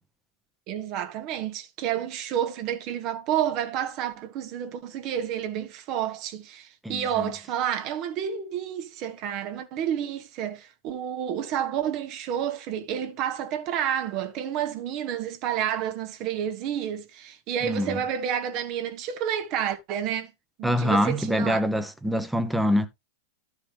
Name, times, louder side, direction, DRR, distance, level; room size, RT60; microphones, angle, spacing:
voice 1, 0.7-20.3 20.6-21.6, right 9 dB, 45° right, 1.2 m, -30 dB
voice 2, 6.8-7.3 17.6-18.0 20.6-22.9, equal, 5° right, 1.0 m, -25 dB
12.5 x 4.8 x 3.4 m
figure-of-eight pair, 95°, 0 cm